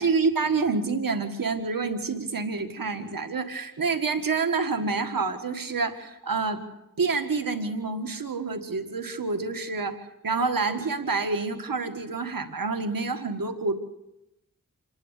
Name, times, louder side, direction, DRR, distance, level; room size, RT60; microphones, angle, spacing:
voice 1, 0.0-6.6 7.0-10.0 10.2-13.7, right 4 dB, 90° right, 6 dB, 1.7 m, -27 dB
28.0 x 11.0 x 8.3 m, 0.88 s
wide cardioid pair, 55°, 33 cm